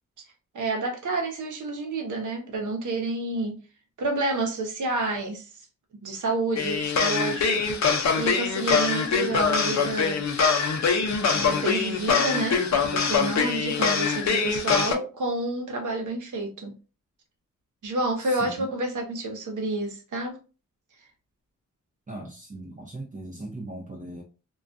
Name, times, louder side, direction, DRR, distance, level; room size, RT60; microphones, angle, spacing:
voice 1, 0.5-3.6 4.0-5.5 6.0-10.2 11.3-16.7 17.8-20.4, right 2 dB, 70° right, 0.8 m, -29 dB
sound 1, 6.6-14.9, left 5 dB, 60° left, 0.6 m, -24 dB
voice 2, 18.2-18.7 22.1-24.2, right 1 dB, 25° right, 0.5 m, -39 dB
2.3 x 2.2 x 2.5 m
cardioid pair, 65°, 32 cm